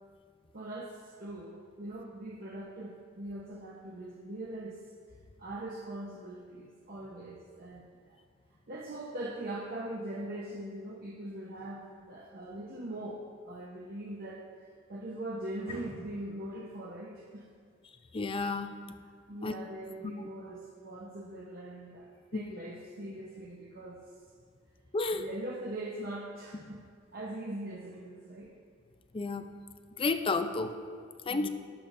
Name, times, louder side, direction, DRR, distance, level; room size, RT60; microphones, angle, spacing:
voice 1, 0.5-4.9 5.4-8.2 8.7-14.5 14.9-17.5 19.0-24.0 25.1-26.8 27.1-28.5 31.3-31.5, right 1 dB, 50° right, -2 dB, 0.8 m, -41 dB
voice 2, 18.1-18.7 19.4-19.5 20.0-20.1 22.3-22.4 24.9-25.2 29.1-29.5 30.0-30.8 31.3-31.5, left 3 dB, 30° left, 9 dB, 0.4 m, -31 dB
17.5 x 7.2 x 2.6 m, 2.1 s
head